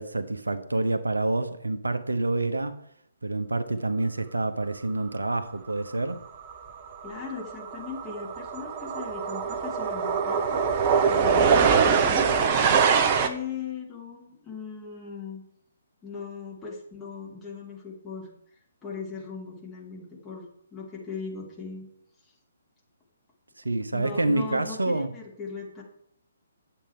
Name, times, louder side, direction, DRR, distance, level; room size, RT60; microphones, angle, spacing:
voice 1, 0.0-2.8 3.2-6.3 23.6-25.1, right 2 dB, 75° right, 0.9 m, -27 dB
sound 1, 6.5-6.7 7.0-13.3, right 6 dB, 30° right, 0.9 m, -23 dB
voice 2, 7.0-10.7 11.0-12.5 13.2-15.4 16.0-18.3 18.8-21.9 23.9-25.8, left 5 dB, 15° left, 2.4 m, -38 dB
10.0 x 7.9 x 4.5 m
figure-of-eight pair, 130°, 0 cm